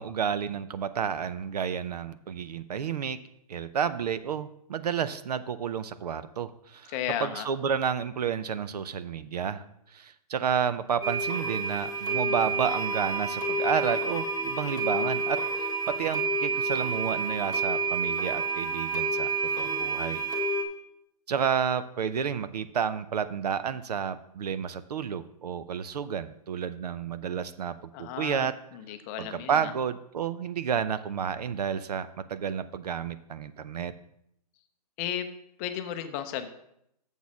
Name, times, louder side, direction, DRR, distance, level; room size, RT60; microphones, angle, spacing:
voice 1, 0.0-3.2 3.5-6.9 7.2-9.6 9.9-19.3 19.6-20.2 21.3-28.5 29.2-33.9, right 7 dB, 75° right, 13 dB, 0.7 m, -31 dB
voice 2, 6.9-7.5 27.9-28.5 28.7-29.7 35.0-35.3 35.6-36.5, left 10 dB, 25° left, 8 dB, 0.5 m, -34 dB
sound 1, 11.0-20.6, right 3 dB, 20° right, 1.3 m, -29 dB
7.2 x 6.2 x 6.0 m, 0.76 s
hypercardioid pair, 150°, 21 cm